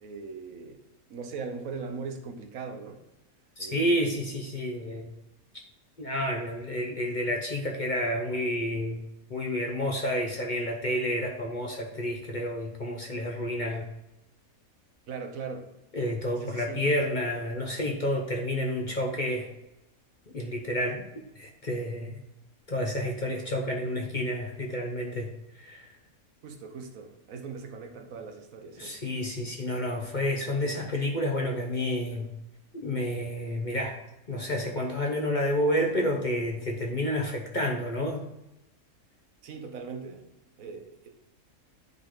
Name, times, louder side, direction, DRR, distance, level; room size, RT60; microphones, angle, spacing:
voice 1, 0.0-0.8 1.1-3.0 3.6-4.1 15.1-15.7 16.4-16.9 26.4-29.0 39.4-40.3 40.6-41.1, right 5 dB, 70° right, 4 dB, 1.3 m, -40 dB
voice 2, 3.6-5.1 6.0-9.0 9.3-13.9 15.9-19.5 20.3-21.0 21.4-22.2 22.7-25.3 25.6-25.9 28.8-32.3 32.7-34.0 34.3-38.2, left 1 dB, 40° left, 0 dB, 0.8 m, -30 dB
10.0 x 3.9 x 3.7 m, 0.91 s
omnidirectional pair, 1.5 m